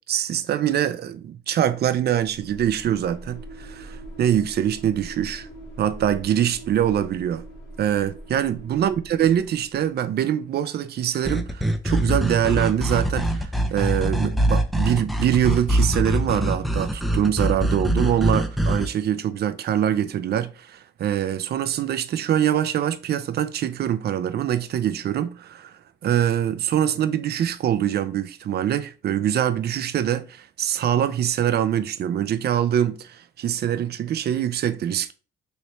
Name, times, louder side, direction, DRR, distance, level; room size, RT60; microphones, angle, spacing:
voice 1, 0.1-5.5 5.8-7.4 7.8-35.1, right 10 dB, 55° right, 0.5 m, -24 dB
sound 1, 2.1-9.9, right 1 dB, 85° left, 1.7 m, -42 dB
sound 2, 11.2-18.9, right 1 dB, ahead, 0.4 m, -23 dB
3.1 x 3.1 x 3.0 m
cardioid pair, 90°, 20 cm